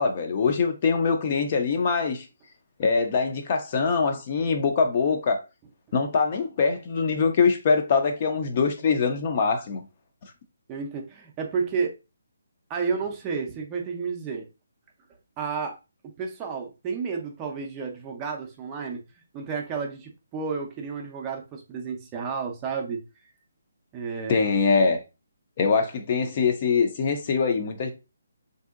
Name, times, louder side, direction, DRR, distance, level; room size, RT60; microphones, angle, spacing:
voice 1, 0.0-2.3 2.8-5.4 5.9-9.8 24.3-25.0 25.6-27.9, left 5 dB, 35° left, 0.4 m, -23 dB
voice 2, 10.7-12.0 12.7-14.5 15.4-15.8 16.2-19.0 19.3-23.0 23.9-24.4, right 5 dB, 20° right, 0.5 m, -31 dB
3.6 x 2.6 x 2.4 m
hypercardioid pair, 165°, 0 cm